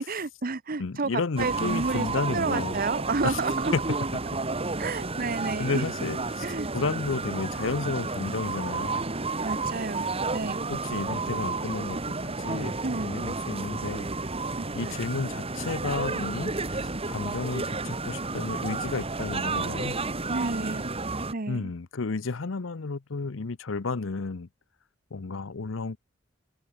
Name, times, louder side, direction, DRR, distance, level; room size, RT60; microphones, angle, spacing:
voice 1, 0.0-1.1 1.4-2.1 2.3-3.7 4.8-5.8 6.4-6.7 9.4-10.7 12.8-13.1 14.6-15.0 20.3-20.9 21.3-21.7, right 3 dB, 45° right, 1.0 m, -31 dB
voice 2, 0.8-2.8 3.2-3.4 3.7-3.8 5.6-6.5 6.7-9.0 10.7-12.8 13.0-14.1 14.7-20.0 21.5-24.5 25.1-26.0, left 4 dB, 70° left, 0.7 m, -32 dB
sound 1, 1.4-21.3, right 3 dB, 30° right, 2.1 m, -31 dB
open air
head